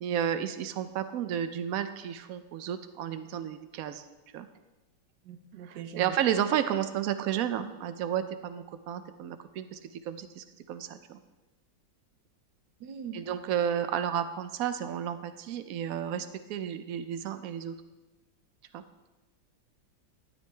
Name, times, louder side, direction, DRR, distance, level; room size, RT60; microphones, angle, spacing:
voice 1, 0.0-4.1 4.3-4.5 5.6-11.2 13.1-17.7 18.7-18.8, right 9 dB, 85° right, 10 dB, 0.7 m, -32 dB
voice 2, 5.2-6.2 12.8-13.2, right 8 dB, 70° right, 7 dB, 1.4 m, -41 dB
12.5 x 10.5 x 3.3 m, 1.1 s
omnidirectional pair, 2.1 m